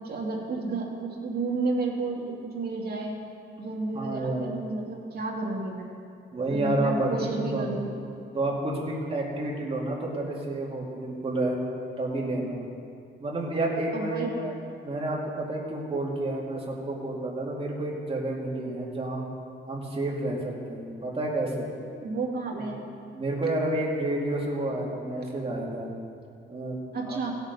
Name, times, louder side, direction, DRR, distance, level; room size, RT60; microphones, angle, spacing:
voice 1, 0.0-3.2 3.6-5.9 6.5-7.9 13.9-14.3 22.0-22.8 26.9-27.3, right 3 dB, 50° right, -2 dB, 2.2 m, -31 dB
voice 2, 3.9-4.7 6.3-7.8 8.3-11.6 12.0-12.6 13.2-14.5 14.8-19.2 19.7-21.7 22.5-22.6 23.1-25.9 26.5-26.8 27.0-27.2, right 2 dB, 25° right, -3 dB, 2.3 m, -30 dB
16.5 x 7.3 x 5.3 m, 2.4 s
cardioid pair, 135°, 21 cm